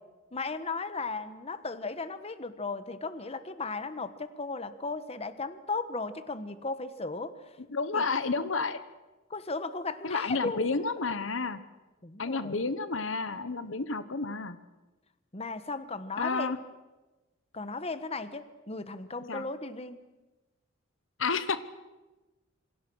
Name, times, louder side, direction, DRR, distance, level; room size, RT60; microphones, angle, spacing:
voice 1, 0.3-7.6 7.9-8.0 9.3-10.8 12.0-12.6 15.3-16.6 17.5-20.0, left 3 dB, 30° left, 11 dB, 1.2 m, -36 dB
voice 2, 7.7-8.8 10.0-11.6 12.2-14.6 16.2-16.6 19.3-19.4 21.2-21.6, left 4 dB, 70° left, 13 dB, 1.1 m, -30 dB
27.5 x 24.5 x 6.3 m, 1.1 s
head